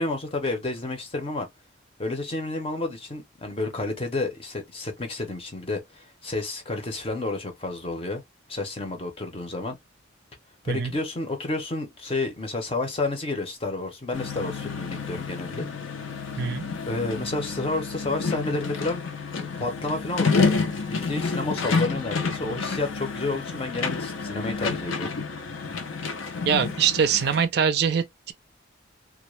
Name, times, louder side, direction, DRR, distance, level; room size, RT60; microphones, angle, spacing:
voice 1, 0.0-1.5 2.0-8.2 8.5-9.8 10.6-15.7 16.9-19.0 19.6-20.5 20.8-25.1, left 2 dB, 30° left, 0.6 m, -30 dB
sound 1, 14.1-27.5, left 4 dB, 85° left, 0.6 m, -29 dB
voice 2, 26.4-28.3, right 7 dB, 55° right, 0.4 m, -23 dB
2.3 x 2.1 x 3.0 m
head